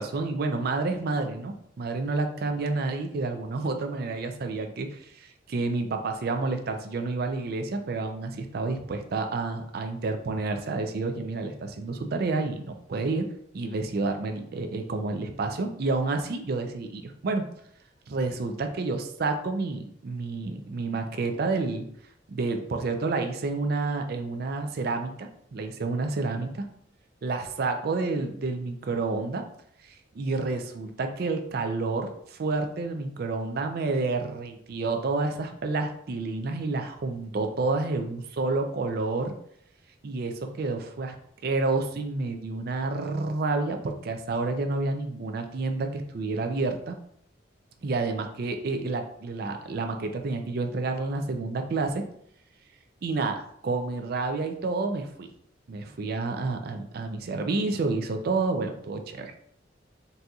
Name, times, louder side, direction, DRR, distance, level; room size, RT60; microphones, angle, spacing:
voice 1, 0.0-13.3 13.5-17.4 18.1-21.8 22.3-26.7 27.2-29.4 29.9-39.3 40.0-41.1 41.4-47.0 47.8-52.0 53.0-55.3 55.7-59.3, right 3 dB, 55° right, 5 dB, 0.4 m, -29 dB
4.1 x 2.6 x 2.3 m, 0.68 s
head